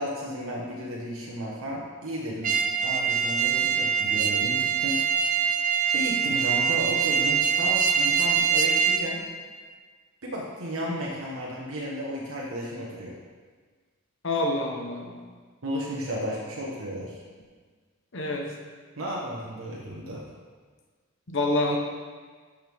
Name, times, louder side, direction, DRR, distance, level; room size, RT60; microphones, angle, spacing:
voice 1, 0.0-5.0 5.9-9.2 10.2-13.1 15.6-17.2 19.0-20.2, equal, 90° right, -4 dB, 1.3 m, -33 dB
sound 1, 2.4-9.0, right 7 dB, 40° right, 0.6 m, -24 dB
voice 2, 14.2-15.2 18.1-18.5 21.3-21.8, left 2 dB, 60° left, 1 dB, 1.1 m, -27 dB
12.5 x 6.6 x 3.6 m, 1.5 s
head